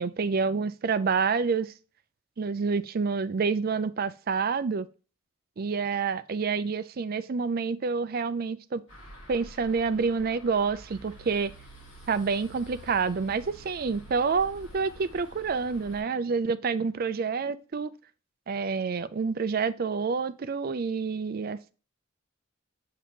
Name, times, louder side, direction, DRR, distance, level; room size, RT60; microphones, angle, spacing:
voice 1, 0.0-1.7 2.4-4.9 5.6-8.8 9.3-11.5 12.1-17.9 18.5-21.7, right 5 dB, 45° right, 0.4 m, -28 dB
sound 1, 8.9-16.0, right 1 dB, 65° left, 3.7 m, -48 dB
7.4 x 3.0 x 5.1 m
head